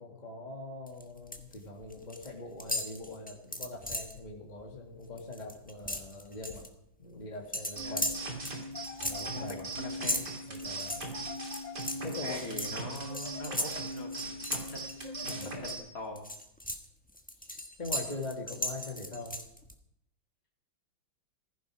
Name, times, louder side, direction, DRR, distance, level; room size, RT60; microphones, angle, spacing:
voice 1, 0.0-6.7 7.0-8.1 9.0-9.9 10.5-11.0 12.0-12.8 15.2-15.6 17.4-19.4, left 2 dB, 20° left, 0 dB, 2.1 m, -42 dB
sound 1, 0.9-1.5 1.8-2.3 2.6-4.2 4.6-4.8 5.1-6.7 7.5-15.7 16.1-19.7, equal, 5° left, 0.9 m, -37 dB
sound 2, 7.8-15.8, right 2 dB, 60° right, 3.3 m, -39 dB
sound 3, 8.7-10.0 10.9-12.4 13.1-14.3 15.0-16.2, left 8 dB, 70° left, 1.6 m, -48 dB
voice 2, 9.2-10.3 12.2-14.9 15.2-16.3, left 1 dB, 45° left, 1 dB, 2.8 m, -43 dB
15.5 x 15.0 x 4.9 m, 0.76 s
omnidirectional pair, 2.1 m